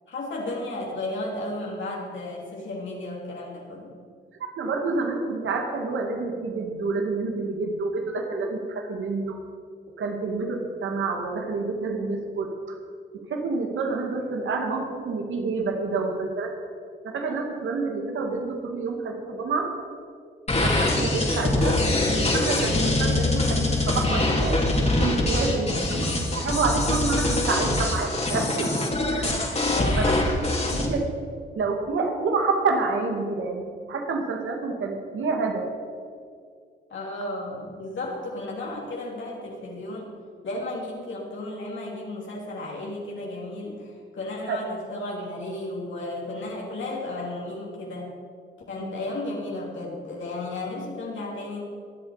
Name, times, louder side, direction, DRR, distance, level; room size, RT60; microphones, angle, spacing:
voice 1, 0.1-3.9 25.4-25.9 29.6-30.2 30.6-30.8 36.9-40.1 40.4-48.2 48.7-51.6, left 2 dB, 70° left, -3 dB, 3.2 m, -34 dB
voice 2, 4.4-9.4 10.0-12.5 13.3-16.5 17.0-19.7 20.5-21.8 22.2-24.6 25.0-28.7 29.1-29.5 30.0-30.1 30.6-31.0 31.5-33.6 33.9-35.7 44.5-44.6 48.8-49.0, right 3 dB, 80° right, 3 dB, 2.1 m, -28 dB
sound 1, 20.5-30.8, left 2 dB, 30° left, 3.1 m, -24 dB
22.0 x 8.1 x 5.0 m, 2.1 s
cardioid pair, 60°, 20 cm